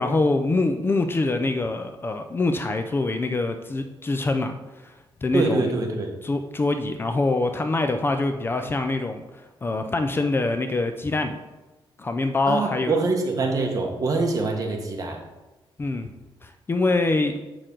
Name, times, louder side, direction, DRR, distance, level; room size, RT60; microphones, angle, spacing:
voice 1, 0.0-5.7 6.2-11.4 12.0-13.0 15.8-16.1 16.4-17.4, left 2 dB, 25° left, 6 dB, 0.5 m, -25 dB
voice 2, 5.3-6.1 12.5-15.2, right 3 dB, 40° right, 2 dB, 1.3 m, -24 dB
7.6 x 6.5 x 3.8 m, 1.1 s
cardioid pair, 135°, 9 cm